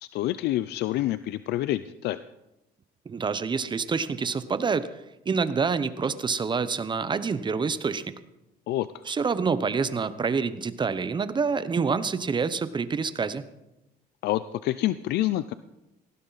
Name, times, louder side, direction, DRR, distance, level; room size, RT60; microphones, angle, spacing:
voice 1, 0.0-2.3 8.7-8.9 14.2-15.5, left 14 dB, 75° left, 14 dB, 0.5 m, -27 dB
voice 2, 3.1-4.9 5.3-8.1 9.1-13.4, right 5 dB, 25° right, 14 dB, 0.9 m, -27 dB
18.5 x 15.5 x 4.1 m, 0.94 s
cardioid pair, 110°, 17 cm